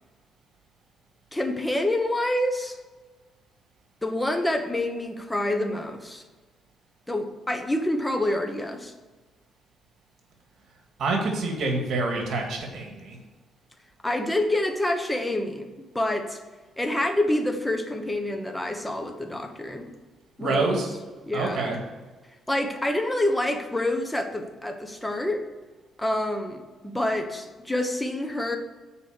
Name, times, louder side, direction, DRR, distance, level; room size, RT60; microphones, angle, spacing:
voice 1, 1.3-2.8 4.0-6.2 7.1-8.9 14.0-16.4 16.8-19.9 20.4-20.7 21.3-21.8 22.5-25.4 26.0-28.6, left 1 dB, 10° left, 5 dB, 1.2 m, -27 dB
voice 2, 11.0-13.2 20.4-20.9 21.3-21.8, right 3 dB, 65° right, 2 dB, 2.1 m, -27 dB
7.0 x 5.0 x 6.7 m, 1.3 s
cardioid pair, 90°, 0 cm